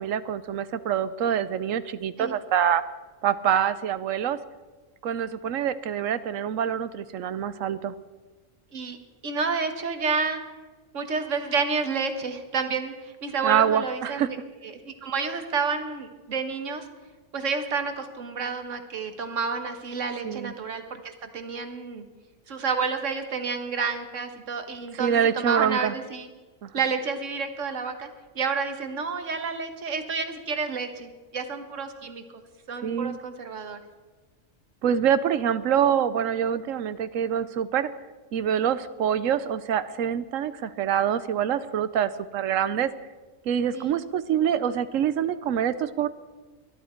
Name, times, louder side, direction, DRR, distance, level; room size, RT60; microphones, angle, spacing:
voice 1, 0.0-2.8 3.2-4.4 5.0-7.9 13.4-14.3 20.2-20.5 25.0-25.9 26.6-26.7 32.8-33.2 34.8-37.9 38.3-42.9 43.5-46.1, right 9 dB, 85° right, 14 dB, 1.1 m, -25 dB
voice 2, 9.2-10.4 10.9-14.4 14.6-16.9 17.3-22.0 22.5-26.3 26.7-28.1 28.3-32.4 32.7-33.8 43.7-44.0, right 5 dB, 70° right, 7 dB, 1.6 m, -30 dB
21.0 x 12.0 x 4.4 m, 1.3 s
omnidirectional pair, 1.3 m